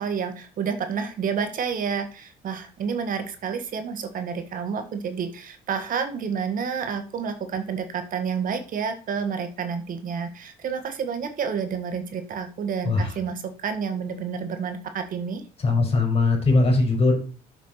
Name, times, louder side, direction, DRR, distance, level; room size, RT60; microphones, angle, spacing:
voice 1, 0.0-15.4, right 6 dB, 55° right, 8 dB, 1.6 m, -29 dB
voice 2, 12.8-13.1 15.6-17.2, left 3 dB, 35° left, 2 dB, 5.0 m, -20 dB
7.6 x 6.9 x 5.7 m, 0.38 s
cardioid pair, 110°, 17 cm